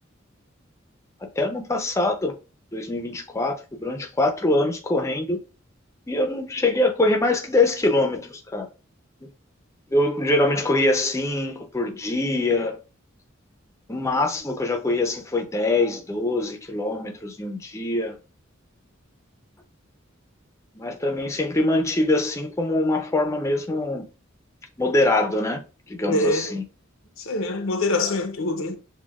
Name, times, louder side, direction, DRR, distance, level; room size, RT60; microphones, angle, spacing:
voice 1, 1.2-2.4 2.7-5.4 6.1-8.7 9.2-9.3 9.9-12.8 13.9-18.2 20.7-24.1 24.8-25.6 25.9-26.7, left 2 dB, 15° left, 0.5 m, -23 dB
voice 2, 26.1-26.5 27.2-28.8, left 2 dB, 90° left, 0.7 m, -25 dB
6.1 x 2.2 x 2.3 m
head